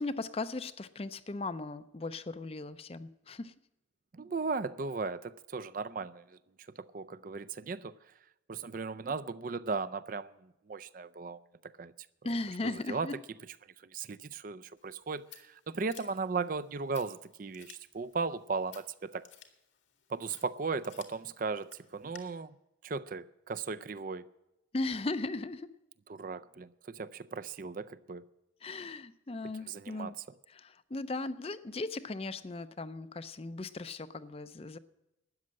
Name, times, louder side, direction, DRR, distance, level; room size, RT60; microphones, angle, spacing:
voice 1, 0.0-3.5 12.2-13.1 24.7-25.7 28.6-30.2 30.5-34.8, left 2 dB, 30° left, 0.5 m, -37 dB
voice 2, 4.1-6.4 6.8-7.9 8.5-11.9 12.6-13.1 13.9-19.3 20.1-22.5 22.8-24.3 26.1-28.2 29.7-30.2, right 4 dB, 45° right, 0.4 m, -37 dB
Scissors, 14.8-22.2, left 10 dB, 85° left, 1.8 m, -57 dB
13.0 x 9.6 x 7.5 m
head